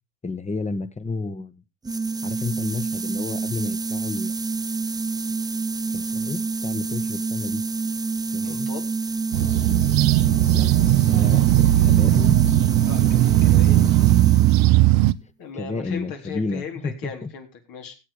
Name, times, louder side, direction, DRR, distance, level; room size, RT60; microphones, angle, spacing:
voice 1, 0.2-1.5 2.2-4.3 5.9-7.6 8.3-8.7 10.5-10.7 11.0-12.4 13.5-14.1 15.6-17.3, left 3 dB, 20° left, 13 dB, 1.5 m, -31 dB
sound 1, 1.8-14.8, right 4 dB, 10° right, 0.6 m, -27 dB
voice 2, 8.4-8.9 12.9-14.0 15.4-17.9, left 5 dB, 60° left, 3 dB, 4.0 m, -37 dB
sound 2, 9.3-15.1, right 16 dB, 65° right, 0.9 m, -17 dB
15.5 x 8.0 x 5.1 m, 0.29 s
supercardioid pair, 95°, 38 cm